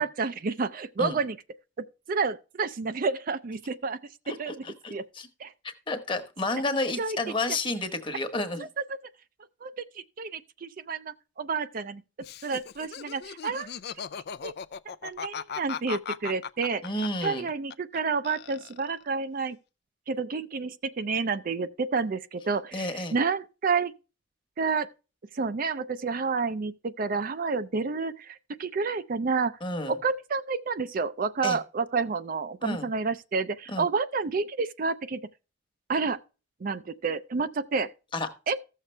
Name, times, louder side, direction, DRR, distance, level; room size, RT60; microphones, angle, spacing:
voice 1, 0.0-1.4 2.1-4.0 4.3-4.6 4.9-5.1 5.4-5.5 7.0-7.2 8.6-8.7 9.6-9.7 10.2-12.0 12.4-13.7 14.4-14.5 14.9-16.8 17.2-19.6 20.1-23.9 24.6-24.9 25.3-29.6 29.9-35.2 35.9-36.2 36.6-37.9 38.5-38.6, right 4 dB, 45° right, 0.4 m, -29 dB
voice 2, 4.3-5.3 5.6-8.7 16.8-17.5 22.7-23.1 29.6-30.0 31.4-31.6 32.6-32.9 33.7-33.8 38.1-38.3, left 2 dB, 25° left, 1.1 m, -31 dB
Laughter, 12.2-18.0 18.2-19.0, left 7 dB, 55° left, 0.4 m, -38 dB
15.0 x 6.6 x 3.3 m
head